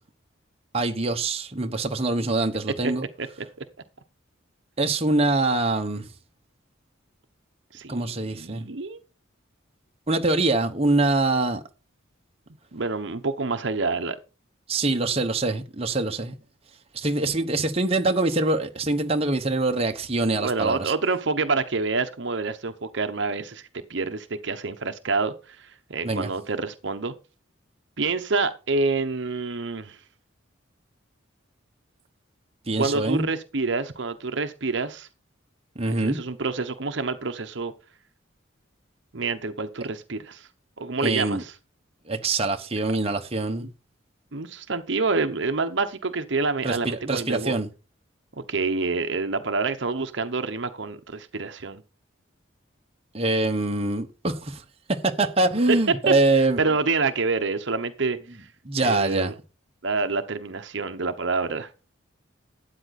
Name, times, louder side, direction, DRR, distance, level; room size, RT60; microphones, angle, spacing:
voice 1, 0.7-3.1 4.8-6.1 7.9-8.6 10.1-11.6 14.7-16.3 16.9-20.9 26.0-26.3 32.7-33.3 35.7-36.2 41.0-41.4 42.1-43.7 46.6-47.7 53.1-54.6 55.0-56.6 58.6-59.3, right 2 dB, 30° right, 1.1 m, -24 dB
voice 2, 3.2-3.6 7.7-9.0 12.7-14.2 20.3-27.1 28.0-30.0 32.8-35.1 35.9-37.7 39.1-40.5 40.8-41.6 43.6-43.7 44.3-47.5 48.4-51.8 55.7-55.8 56.1-56.2 56.4-58.5 58.8-59.3 59.8-61.7, right 3 dB, 60° right, 0.9 m, -27 dB
13.0 x 9.1 x 4.1 m
head